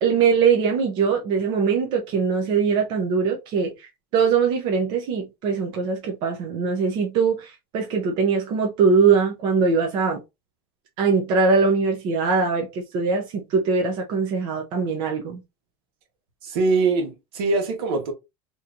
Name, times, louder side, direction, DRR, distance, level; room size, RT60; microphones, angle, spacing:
voice 1, 0.0-10.2 11.0-15.4, right 5 dB, 40° right, 0.7 m, -22 dB
voice 2, 16.4-18.1, right 3 dB, 80° right, 1.4 m, -23 dB
3.9 x 2.9 x 2.5 m
cardioid pair, 180°, 13 cm